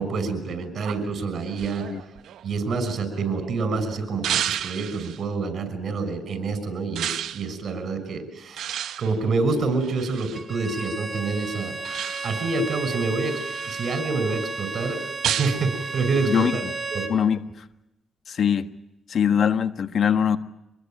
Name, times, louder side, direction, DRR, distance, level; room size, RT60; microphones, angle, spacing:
voice 1, 0.0-1.9 2.4-8.7 9.0-11.8 12.2-13.4 13.7-16.6 16.9-17.1, right 4 dB, 55° right, 10 dB, 6.0 m, -27 dB
sound 1, 0.8-3.5 4.2-5.2 7.0-7.5 8.6-10.4 11.8-12.5 13.0-14.0 15.2-15.6, right 10 dB, 80° right, 1.0 m, -31 dB
Bowed string instrument, 10.3-17.2, right 4 dB, 20° right, 2.7 m, -33 dB
voice 2, 16.3-16.7 17.1-17.4 18.3-18.7 19.1-20.4, left 8 dB, 55° left, 11 dB, 1.3 m, -22 dB
25.5 x 20.5 x 9.0 m, 0.92 s
cardioid pair, 105°, 0 cm